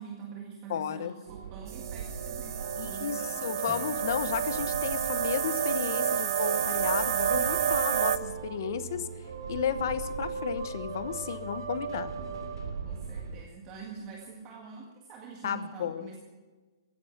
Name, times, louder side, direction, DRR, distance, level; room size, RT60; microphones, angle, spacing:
voice 1, 0.0-3.5 12.8-16.2, right 6 dB, 20° right, 0 dB, 1.8 m, -45 dB
voice 2, 0.7-1.1 2.8-9.1 9.5-12.1 15.4-16.1, left 9 dB, 45° left, 14 dB, 1.0 m, -33 dB
sound 1, 1.2-13.4, right 5 dB, 75° right, 3.1 m, -39 dB
sound 2, 1.7-8.2, right 8 dB, 55° right, 0.7 m, -29 dB
Strum, 3.6-7.8, left 2 dB, 5° left, 0.9 m, -53 dB
15.5 x 11.0 x 7.2 m, 1.3 s
hypercardioid pair, 175°, 2 cm